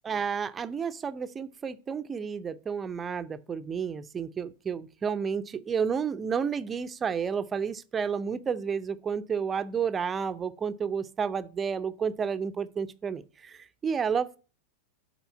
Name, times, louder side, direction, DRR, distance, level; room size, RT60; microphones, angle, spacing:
voice 1, 0.0-13.2 13.8-14.4, right 6 dB, 20° right, 0.5 m, -31 dB
8.0 x 4.3 x 5.4 m
figure-of-eight pair, 90°, 0 cm